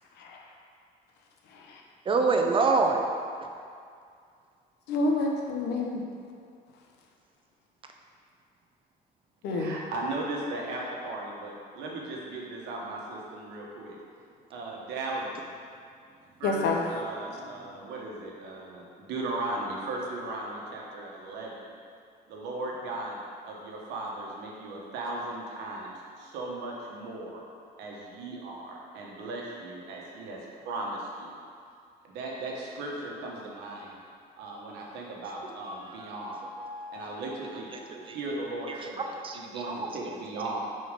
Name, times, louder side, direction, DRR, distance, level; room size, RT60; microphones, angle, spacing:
voice 1, 2.1-3.0 35.6-37.2 37.9-38.2 39.0-39.4 39.7-39.8, right 4 dB, 30° right, 3 dB, 0.6 m, -27 dB
voice 2, 4.9-6.0 9.4-9.7 16.4-16.8, left 3 dB, 85° left, 1 dB, 0.9 m, -28 dB
voice 3, 9.5-14.0 14.5-15.3 16.4-18.8 19.1-21.5 22.3-23.2 23.5-25.9 26.3-27.4 27.8-30.4 30.6-31.0 32.1-33.9 34.4-36.4 36.9-37.7 38.1-40.6, right 2 dB, 90° right, -2 dB, 1.2 m, -37 dB
4.9 x 4.2 x 5.2 m, 2.2 s
cardioid pair, 110°, 17 cm